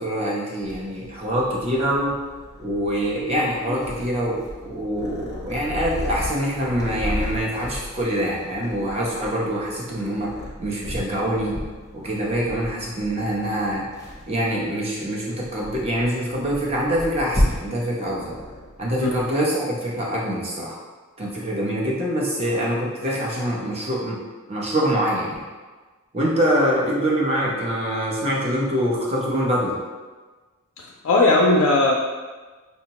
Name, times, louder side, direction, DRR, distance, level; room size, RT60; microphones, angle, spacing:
voice 1, 0.0-2.2 2.6-10.3 10.6-11.6 11.9-13.8 14.3-18.3 18.8-20.8 21.2-24.2 24.5-25.4 26.1-29.8, equal, 25° right, -4 dB, 0.7 m, -24 dB
Purr, 0.6-19.3, left 1 dB, 15° left, 0.6 m, -33 dB
voice 2, 30.8-31.9, left 2 dB, 60° left, 0 dB, 0.3 m, -18 dB
5.3 x 2.1 x 2.8 m, 1.3 s
head